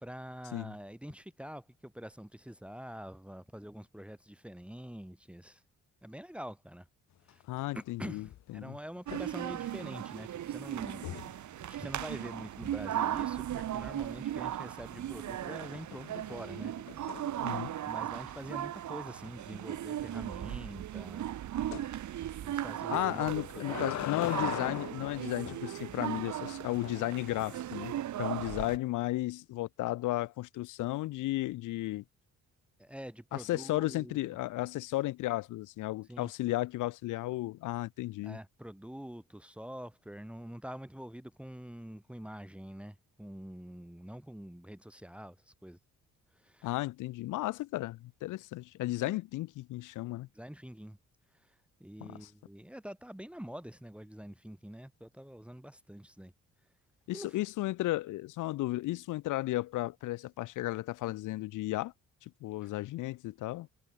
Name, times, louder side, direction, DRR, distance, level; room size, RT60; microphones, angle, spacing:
voice 1, 0.0-5.6 6.0-6.9 7.3-7.4 7.7-17.3 17.8-21.3 22.0-24.5 32.8-34.2 36.1-36.3 38.2-45.8 46.4-46.8 49.0-49.2 50.3-51.0 51.8-56.3 57.1-57.4, equal, 5° right, 2.5 m, -46 dB
sound 1, 7.3-7.9 8.2-8.5 10.9-11.4 14.5-15.0 15.5-17.9 18.3-18.4 18.8-18.9 19.2-19.3 21.7-21.9 23.2-25.7 26.4-26.9, left 12 dB, 65° left, 1.0 m, -41 dB
voice 2, 7.5-8.3 8.5-8.7 9.1-9.2 17.4-17.7 22.9-32.0 33.3-38.4 46.6-50.3 52.0-52.3 57.1-61.9 62.2-63.7, left 17 dB, 85° left, 0.9 m, -34 dB
sound 2, 9.1-28.8, right 12 dB, 70° right, 3.8 m, -37 dB
cardioid pair, 90°, 30 cm